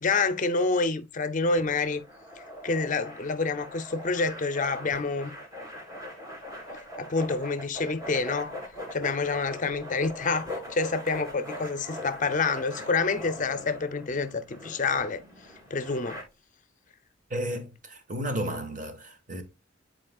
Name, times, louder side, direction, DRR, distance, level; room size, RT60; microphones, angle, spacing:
voice 1, 0.0-2.0 2.6-5.3 7.0-8.6 8.9-15.2 15.7-16.2, left 4 dB, 40° left, 0.6 m, -28 dB
sound 1, 1.5-16.2, left 1 dB, 20° right, 2.1 m, -41 dB
voice 2, 17.3-19.4, equal, 45° right, 1.4 m, -33 dB
10.5 x 4.3 x 2.3 m
head